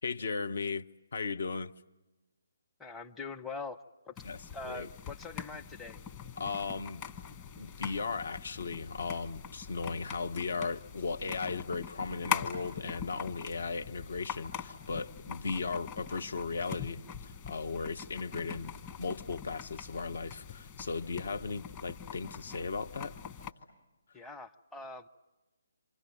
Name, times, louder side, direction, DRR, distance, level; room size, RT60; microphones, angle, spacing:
voice 1, 0.0-1.7 4.2-4.4 4.6-4.9 6.4-7.0 7.6-23.1, left 4 dB, 55° left, 0.9 m, -36 dB
voice 2, 2.8-3.8 4.1-4.2 4.5-6.0 24.1-25.1, left 3 dB, 5° left, 0.8 m, -43 dB
sound 1, 4.2-23.5, left 8 dB, 20° left, 1.5 m, -43 dB
28.0 x 27.0 x 7.6 m
figure-of-eight pair, 140°, 0 cm